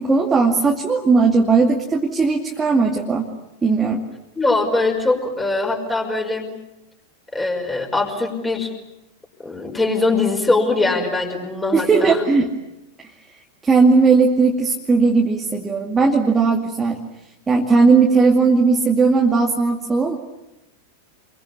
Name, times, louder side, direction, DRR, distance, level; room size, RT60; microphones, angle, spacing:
voice 1, 0.0-3.3 3.6-4.0 11.7-12.5 13.6-17.0 17.5-20.2, right 4 dB, 15° right, 1 dB, 2.4 m, -17 dB
voice 2, 4.4-6.5 7.3-8.7 9.4-12.2, left 3 dB, 10° left, 2 dB, 5.3 m, -21 dB
28.5 x 23.5 x 8.4 m, 0.94 s
figure-of-eight pair, 90°, 0 cm